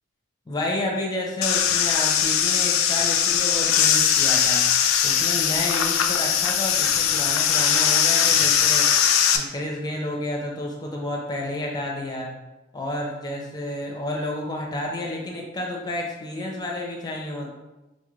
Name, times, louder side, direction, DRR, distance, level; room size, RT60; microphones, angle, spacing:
voice 1, 0.5-4.7 5.0-8.9 9.3-12.3 12.7-17.5, left 1 dB, 20° left, -1 dB, 0.6 m, -30 dB
sound 1, 1.4-9.4, left 8 dB, 80° left, 0.4 m, -20 dB
4.0 x 2.5 x 3.1 m, 1.1 s
head